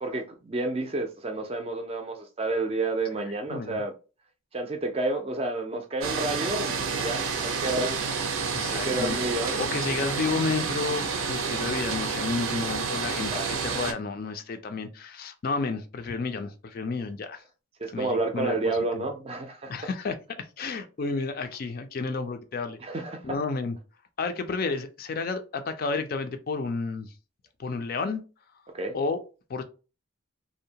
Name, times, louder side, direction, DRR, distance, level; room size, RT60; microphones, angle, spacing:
voice 1, 0.0-3.9 4.5-8.0 8.7-9.6 13.3-13.5 17.8-19.7 22.8-23.2 28.7-29.0, right 2 dB, 30° right, 0.4 m, -30 dB
voice 2, 3.5-3.8 8.5-9.2 9.6-17.4 17.9-18.6 18.9-19.1 19.7-22.8 23.2-23.8 24.2-27.1 27.6-28.2 28.9-29.2 29.5-29.6, left 4 dB, 45° left, 0.3 m, -31 dB
sound 1, 6.0-13.9, right 5 dB, 75° right, 0.6 m, -29 dB
2.6 x 2.1 x 2.7 m
head